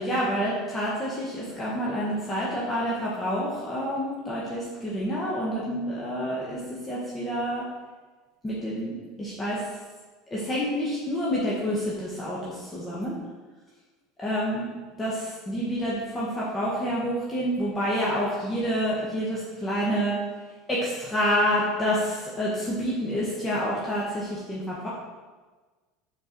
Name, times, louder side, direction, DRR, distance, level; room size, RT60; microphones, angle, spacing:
voice 1, 0.0-7.6 8.4-9.7 10.3-13.2 14.2-14.7 15.0-20.2 20.7-24.9, equal, 15° left, -7 dB, 1.5 m, -28 dB
6.6 x 4.5 x 4.6 m, 1.3 s
supercardioid pair, 120°, 0 cm